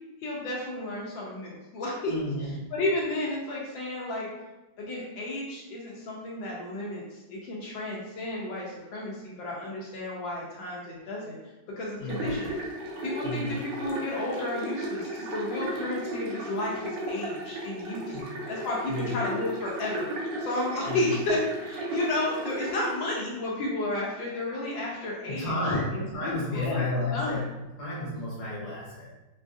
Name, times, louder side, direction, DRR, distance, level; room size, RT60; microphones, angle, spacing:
voice 1, 0.2-2.1 2.7-4.3 4.8-7.0 7.3-8.7 8.9-11.4 11.8-12.5 13.0-18.1 18.5-27.4, left 2 dB, 85° left, -4 dB, 1.4 m, -32 dB
voice 2, 2.1-2.5 12.0-12.2 13.2-13.5 18.1-18.3 18.9-19.1 20.8-21.1 25.3-27.4 27.8-29.1, left 2 dB, 60° left, -5 dB, 1.6 m, -32 dB
sound 1, 12.1-22.9, right 1 dB, 75° right, 1.4 m, -35 dB
4.6 x 2.5 x 2.3 m, 1.0 s
omnidirectional pair, 2.0 m